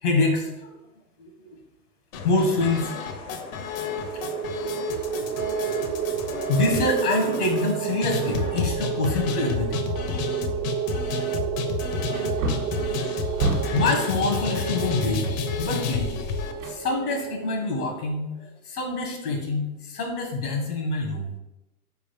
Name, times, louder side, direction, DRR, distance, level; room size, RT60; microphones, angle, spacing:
voice 1, 0.0-0.8 1.2-1.3 2.2-2.9 4.1-5.5 5.9-10.1 11.9-16.3 16.6-21.3, left 2 dB, 80° left, 2 dB, 1.3 m, -27 dB
sound 1, 2.1-16.5, left 6 dB, 65° left, 0.7 m, -31 dB
sound 2, 3.7-18.1, right 9 dB, 45° right, 0.5 m, -31 dB
Wood, 12.1-13.9 16.6-17.4 17.7-17.8, right 3 dB, 65° right, 1.0 m, -30 dB
3.9 x 3.7 x 3.3 m, 0.94 s
hypercardioid pair, 110°, 44 cm